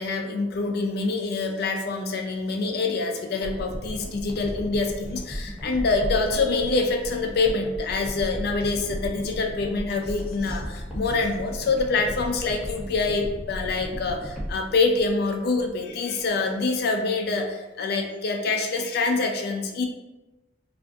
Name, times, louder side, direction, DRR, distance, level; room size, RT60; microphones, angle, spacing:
voice 1, 0.0-19.8, left 3 dB, 55° left, 3 dB, 0.4 m, -26 dB
sound 1, 3.4-15.9 16.2-16.3, equal, 5° right, 0.6 m, -35 dB
2.5 x 2.4 x 3.3 m, 1.0 s
head